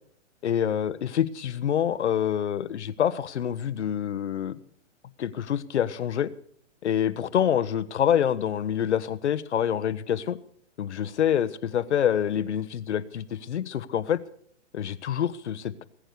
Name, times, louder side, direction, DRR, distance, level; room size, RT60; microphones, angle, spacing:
voice 1, 0.4-4.6 5.2-6.3 6.8-10.4 10.8-14.2 14.7-15.8, left 9 dB, 65° left, 14 dB, 1.0 m, -26 dB
20.0 x 8.9 x 6.7 m, 0.62 s
hypercardioid pair, 125°, 37 cm